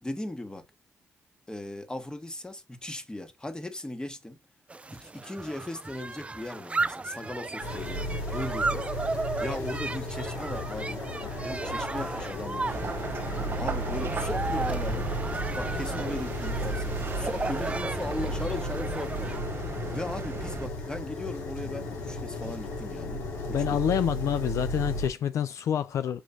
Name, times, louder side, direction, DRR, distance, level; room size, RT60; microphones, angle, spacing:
voice 1, 0.0-0.6 1.5-4.4 4.9-8.9 9.4-12.8 13.6-15.1 15.6-23.2 23.7-23.8, left 1 dB, 15° left, 1.3 m, -38 dB
sound 1, 4.7-19.4, right 3 dB, 25° right, 0.4 m, -35 dB
sound 2, 7.6-25.1, left 1 dB, 90° left, 1.6 m, -34 dB
sound 3, 12.7-20.7, right 4 dB, 45° right, 1.1 m, -37 dB
voice 2, 23.5-26.2, left 9 dB, 75° left, 0.4 m, -27 dB
6.8 x 3.1 x 2.4 m
cardioid pair, 65°, 5 cm